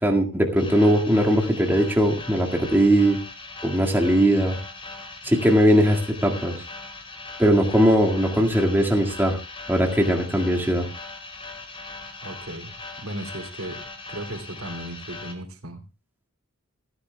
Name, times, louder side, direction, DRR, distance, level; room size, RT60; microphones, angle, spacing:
voice 1, 0.0-3.2 3.6-4.6 5.2-6.6 7.4-9.4 9.7-10.9, equal, 10° right, 0 dB, 2.0 m, -20 dB
sound 1, 0.6-15.3, left 3 dB, 25° left, 3.2 m, -40 dB
voice 2, 12.2-13.8 14.1-15.8, right 1 dB, 75° right, 5 dB, 2.8 m, -36 dB
28.0 x 10.5 x 2.3 m, 0.29 s
head